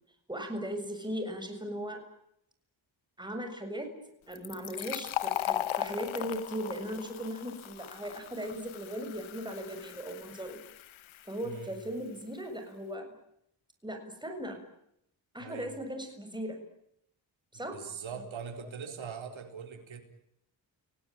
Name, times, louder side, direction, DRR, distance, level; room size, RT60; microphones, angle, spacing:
voice 1, 0.3-2.0 3.2-3.9 4.3-10.6 11.3-13.1 13.8-14.6 15.3-16.6 17.5-17.8 18.6-18.7, equal, 10° right, 5 dB, 7.1 m, -38 dB
Fill (with liquid), 4.3-11.7, left 12 dB, 90° left, 1.1 m, -38 dB
voice 2, 11.4-11.8 15.4-15.7 17.5-20.0, right 6 dB, 75° right, 5 dB, 4.3 m, -42 dB
29.5 x 18.5 x 9.2 m, 0.76 s
cardioid pair, 65°, 47 cm